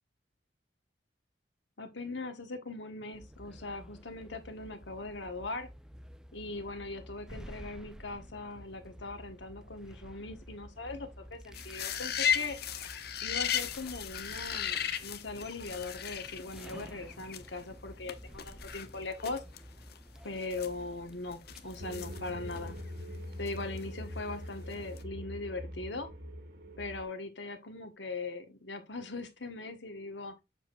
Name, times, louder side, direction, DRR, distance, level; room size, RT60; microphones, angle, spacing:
voice 1, 1.8-5.7 6.3-12.6 13.2-19.4 20.2-22.8 23.4-26.1 26.8-30.4, left 3 dB, 80° left, 1.5 m, -40 dB
sound 1, 3.1-22.8, equal, 5° right, 0.4 m, -51 dB
sound 2, 11.5-17.6 18.1-18.2 18.4-19.6 19.9-20.0 20.4-22.9 23.5-24.4 24.7-25.0, left 9 dB, 60° left, 0.8 m, -36 dB
sound 3, 21.8-27.0, equal, 60° right, 1.5 m, -43 dB
7.7 x 6.4 x 2.5 m
head